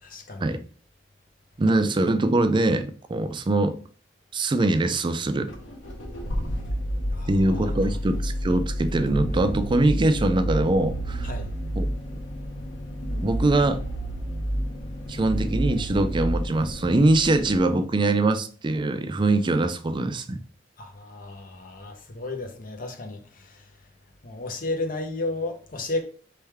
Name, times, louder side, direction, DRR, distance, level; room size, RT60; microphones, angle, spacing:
voice 1, 0.0-0.5 7.1-7.7 11.2-11.5 20.8-23.7 24.2-26.0, left 2 dB, 50° left, 0.9 m, -33 dB
voice 2, 1.6-3.8 4.3-5.5 7.3-11.3 11.8-11.9 13.2-13.8 15.1-20.4, right 2 dB, 25° right, 0.4 m, -23 dB
sound 1, 5.5-17.6, equal, 75° left, 1.1 m, -30 dB
4.4 x 3.3 x 3.4 m
head